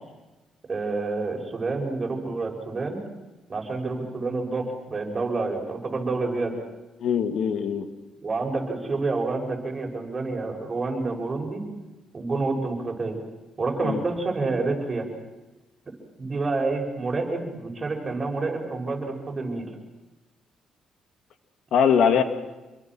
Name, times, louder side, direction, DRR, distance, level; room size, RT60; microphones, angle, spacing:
voice 1, 0.7-3.0 3.5-6.5 8.2-11.6 12.1-13.2 13.6-15.1 16.2-19.7, right 3 dB, 30° right, 1 dB, 7.0 m, -28 dB
voice 2, 7.0-7.9 13.8-14.0 21.7-22.2, left 7 dB, 75° left, 8 dB, 2.5 m, -21 dB
28.0 x 22.5 x 6.4 m, 1.1 s
cardioid pair, 90°, 0 cm